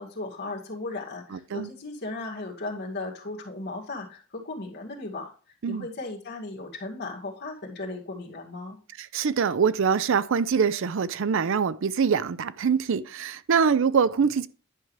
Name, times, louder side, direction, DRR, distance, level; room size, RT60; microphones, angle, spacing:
voice 1, 0.0-5.3 5.7-8.8, left 2 dB, 55° left, 2.2 m, -36 dB
voice 2, 1.3-1.7 5.6-5.9 9.0-14.5, right 6 dB, 65° right, 0.5 m, -24 dB
10.5 x 6.0 x 3.3 m
head